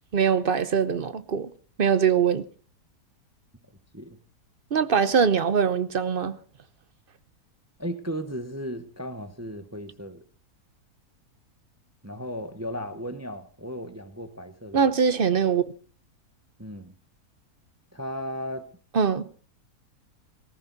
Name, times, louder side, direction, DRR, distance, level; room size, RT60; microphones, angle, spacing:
voice 1, 0.1-1.5 1.8-2.4 4.7-6.4 14.7-15.6 18.9-19.3, right 6 dB, 45° right, 0.9 m, -22 dB
voice 2, 7.8-10.2 12.0-14.9 16.6-16.9 17.9-18.7, equal, 10° right, 0.9 m, -35 dB
18.0 x 14.5 x 4.1 m
omnidirectional pair, 1.7 m